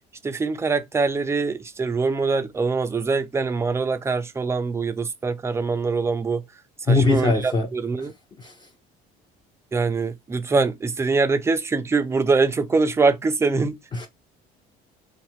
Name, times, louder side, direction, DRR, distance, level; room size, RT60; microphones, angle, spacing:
voice 1, 0.2-6.5 6.9-8.1 9.7-13.8, right 4 dB, 15° right, 0.4 m, -23 dB
voice 2, 6.9-7.7 8.0-8.1 8.4-8.7 13.9-14.1, left 3 dB, 25° left, 0.7 m, -21 dB
2.5 x 2.3 x 3.1 m
cardioid pair, 115°, 19 cm